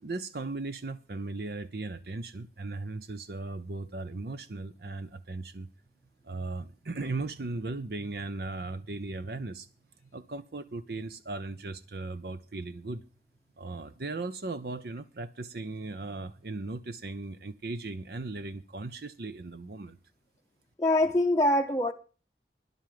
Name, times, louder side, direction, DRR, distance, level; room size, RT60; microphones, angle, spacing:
voice 1, 0.0-5.7 6.2-9.7 10.1-13.0 13.6-20.0, right 3 dB, 60° right, 0.7 m, -37 dB
voice 2, 20.8-21.9, left 1 dB, 15° left, 0.7 m, -24 dB
10.5 x 8.2 x 7.6 m
head